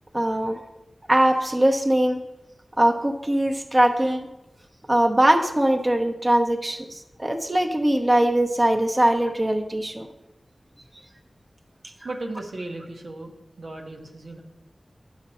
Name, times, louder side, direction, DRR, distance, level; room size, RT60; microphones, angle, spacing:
voice 1, 0.1-0.6 1.1-2.2 2.8-4.3 4.9-10.1, right 1 dB, 25° right, 4 dB, 0.8 m, -21 dB
voice 2, 12.0-13.3 13.6-14.4, right 2 dB, 90° right, 1 dB, 1.2 m, -35 dB
10.5 x 6.2 x 4.2 m, 0.94 s
wide cardioid pair, 75°, 0 cm